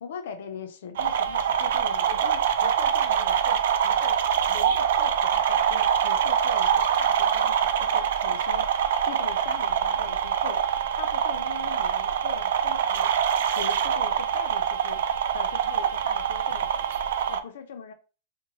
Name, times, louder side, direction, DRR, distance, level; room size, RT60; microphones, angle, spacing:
voice 1, 0.0-4.2 4.5-8.7 9.1-10.6 11.0-13.1 13.6-15.0 15.3-16.7 17.3-17.9, left 7 dB, 70° left, 0.6 m, -41 dB
sound 1, 1.0-17.4, right 8 dB, 65° right, 0.3 m, -24 dB
2.6 x 2.2 x 3.0 m
supercardioid pair, 155°, 0 cm